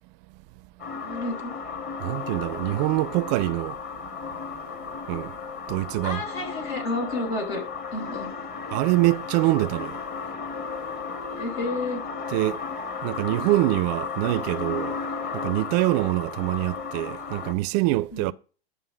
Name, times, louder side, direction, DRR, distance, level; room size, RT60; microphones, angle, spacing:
sound 1, 0.8-17.5, left 5 dB, 30° left, 1.4 m, -34 dB
voice 1, 0.9-1.6 6.0-7.6 7.9-8.3 11.4-12.0 18.1-18.3, left 2 dB, 75° left, 3.5 m, -30 dB
voice 2, 2.0-3.8 5.1-5.4 5.7-6.2 8.7-10.0 12.3-12.6 13.0-15.0 15.3-18.3, right 18 dB, 45° right, 0.4 m, -24 dB
11.5 x 5.4 x 4.9 m
hypercardioid pair, 95°, 31 cm